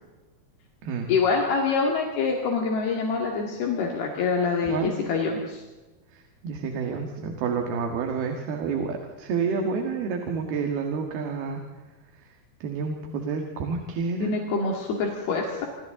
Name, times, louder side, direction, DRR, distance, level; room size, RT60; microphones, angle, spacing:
voice 1, 1.1-5.6 14.2-15.7, left 4 dB, 75° left, 0 dB, 4.1 m, -25 dB
voice 2, 6.4-11.6 12.6-14.3, right 5 dB, 75° right, 3 dB, 3.7 m, -29 dB
27.0 x 26.0 x 3.8 m, 1.2 s
omnidirectional pair, 4.6 m